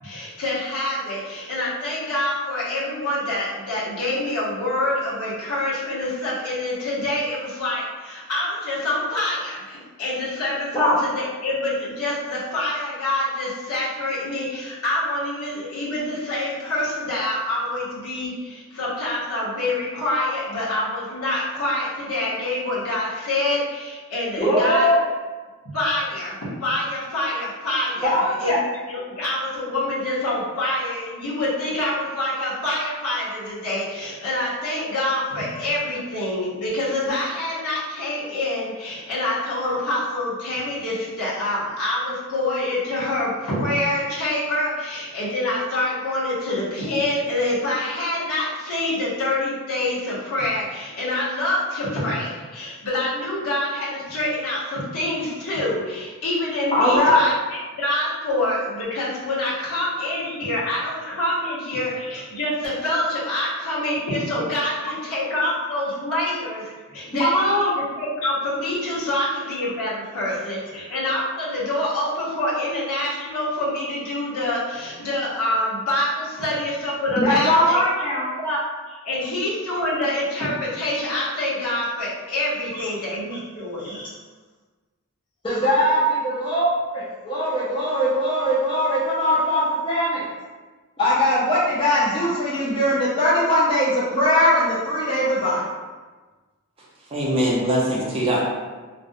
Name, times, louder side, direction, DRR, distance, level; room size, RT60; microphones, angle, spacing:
voice 1, 0.0-11.1 11.4-24.9 25.6-28.1 28.4-28.6 28.9-67.7 68.0-77.8 78.4-78.6 78.9-84.0, left 1 dB, 75° left, -8 dB, 1.0 m, -26 dB
voice 2, 24.4-25.0 28.0-28.6 56.7-57.2 67.2-67.7 77.2-78.3 83.8-84.1 85.4-90.2 91.0-95.6, equal, 20° left, -7 dB, 0.4 m, -20 dB
voice 3, 97.1-98.4, right 1 dB, 25° right, -5 dB, 0.5 m, -22 dB
2.5 x 2.1 x 2.6 m, 1.3 s
head